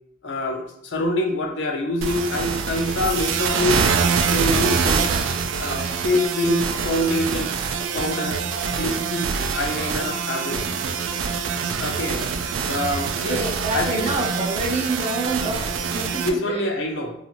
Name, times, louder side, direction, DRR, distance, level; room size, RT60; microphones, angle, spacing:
voice 1, 0.2-3.8 4.3-5.1 5.6-7.5 7.9-8.4 8.8-9.3 9.5-10.6 11.8-12.2 12.7-13.4 13.7-14.1 16.2-17.1, left 1 dB, 70° left, 2 dB, 0.5 m, -25 dB
sound 1, 2.0-16.3, right 5 dB, 85° right, 0.3 m, -25 dB
voice 2, 13.2-16.7, right 2 dB, 35° right, -1 dB, 0.5 m, -27 dB
2.4 x 2.4 x 2.9 m, 0.71 s
head